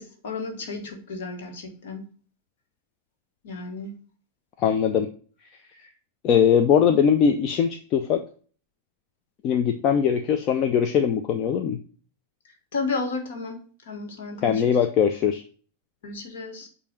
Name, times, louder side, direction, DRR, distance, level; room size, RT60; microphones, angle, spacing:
voice 1, 0.0-2.1 3.4-4.0 12.7-13.6 13.9-14.8 16.0-16.7, left 3 dB, 55° left, 3 dB, 1.7 m, -33 dB
voice 2, 4.6-5.1 6.2-8.2 9.4-11.8 14.4-15.4, left 7 dB, 35° left, 6 dB, 0.6 m, -21 dB
8.3 x 2.8 x 6.2 m, 0.41 s
figure-of-eight pair, 90°, 0 cm